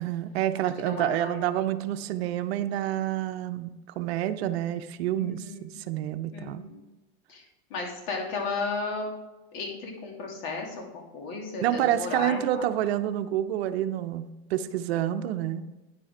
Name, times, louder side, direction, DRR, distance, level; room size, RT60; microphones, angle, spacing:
voice 1, 0.0-6.6 11.6-15.7, right 12 dB, 70° right, 11 dB, 0.7 m, -28 dB
voice 2, 0.8-1.4 5.1-5.6 6.3-6.8 7.3-7.4 7.7-9.1 9.5-12.7, left 4 dB, 60° left, 0 dB, 2.9 m, -34 dB
9.7 x 7.7 x 3.7 m, 1.1 s
supercardioid pair, 130°, 32 cm